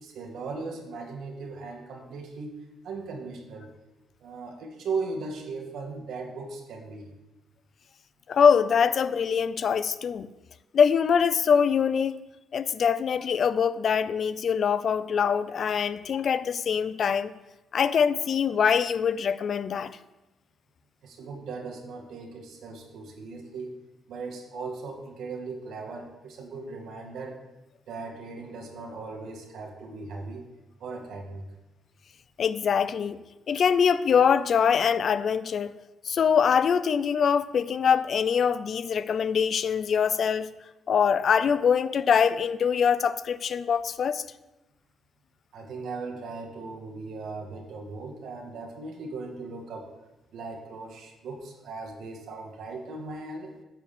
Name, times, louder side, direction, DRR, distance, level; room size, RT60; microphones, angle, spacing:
voice 1, 0.0-3.7 4.2-7.1 21.0-23.8 24.1-27.4 27.9-30.5 30.8-31.5 45.5-49.9 50.3-53.6, right 4 dB, 75° right, 2 dB, 1.7 m, -38 dB
voice 2, 8.3-10.3 10.7-12.2 12.5-17.3 17.7-19.9 32.4-33.2 33.5-35.7 36.0-40.5 40.9-44.2, left 7 dB, 55° left, 15 dB, 0.5 m, -23 dB
8.9 x 4.8 x 7.2 m, 1.0 s
cardioid pair, 90°, 0 cm